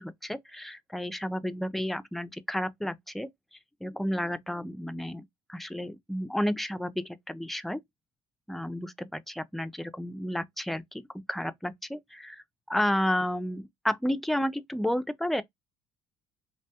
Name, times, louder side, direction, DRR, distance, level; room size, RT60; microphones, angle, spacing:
voice 1, 0.0-3.3 3.8-5.2 5.5-7.8 8.5-11.0 11.3-15.4, left 1 dB, ahead, 0.3 m, -31 dB
2.6 x 2.2 x 2.7 m
supercardioid pair, 85°, 12 cm